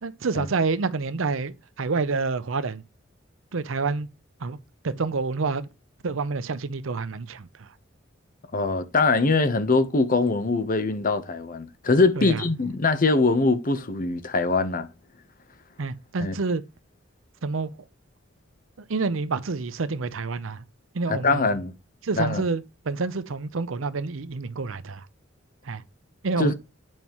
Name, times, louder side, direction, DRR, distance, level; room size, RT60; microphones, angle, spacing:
voice 1, 0.0-2.8 3.5-4.1 4.4-4.6 4.8-5.7 6.0-7.7 12.2-12.4 15.8-16.6 17.4-17.8 18.9-20.6 20.9-21.5 22.0-25.1 25.6-25.8 26.2-26.5, right 4 dB, 80° right, 0.7 m, -28 dB
voice 2, 8.5-14.9 16.2-16.3 21.1-21.7 22.2-22.4 26.4-26.5, left 3 dB, 45° left, 0.9 m, -22 dB
9.1 x 5.4 x 3.0 m
head